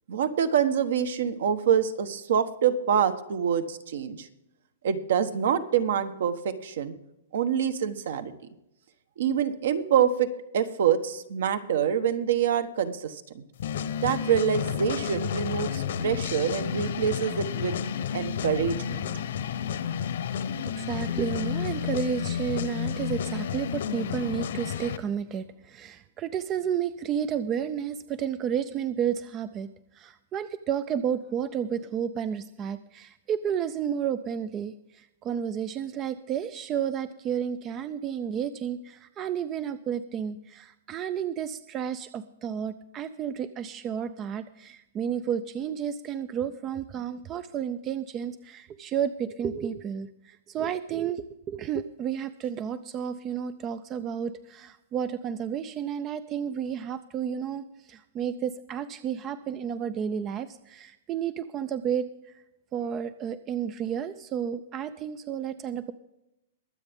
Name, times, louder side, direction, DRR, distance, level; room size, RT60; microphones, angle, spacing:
voice 1, 0.1-4.3 4.8-7.0 7.3-8.3 9.2-13.4 14.0-17.8 18.1-19.0, right 8 dB, 60° right, 11 dB, 1.2 m, -26 dB
sound 1, 13.6-25.0, left 8 dB, 60° left, 0.9 m, -31 dB
voice 2, 20.6-29.7 29.9-62.4 62.7-65.9, right 8 dB, 20° right, 14 dB, 0.4 m, -31 dB
22.5 x 8.0 x 3.6 m, 0.86 s
hypercardioid pair, 175°, 0 cm